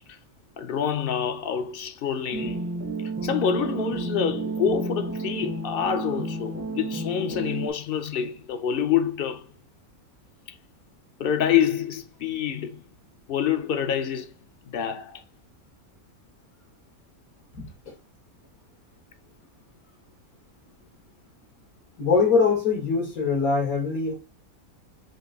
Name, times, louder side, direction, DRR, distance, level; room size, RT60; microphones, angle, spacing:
voice 1, 0.6-2.7 3.2-9.5 11.2-12.8 13.3-14.3 14.7-15.2, left 8 dB, 60° left, 0.6 m, -26 dB
sound 1, 2.3-7.7, right 2 dB, 15° right, 0.4 m, -31 dB
voice 2, 22.0-24.1, left 5 dB, 80° left, 2.2 m, -22 dB
5.1 x 2.6 x 3.8 m
omnidirectional pair, 1.5 m